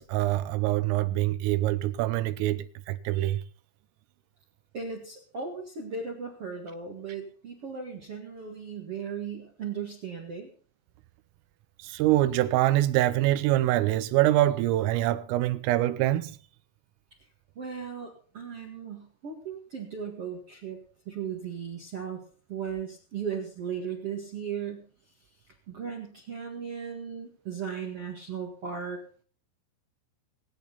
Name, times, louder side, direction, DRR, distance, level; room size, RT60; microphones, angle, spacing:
voice 1, 0.0-3.4 11.8-16.4, right 15 dB, 85° right, 3.4 m, -25 dB
voice 2, 4.7-10.5 17.5-20.8 21.0-22.2 22.5-24.8 25.7-29.0, right 6 dB, 65° right, 1.4 m, -36 dB
22.5 x 8.7 x 4.0 m
omnidirectional pair, 5.9 m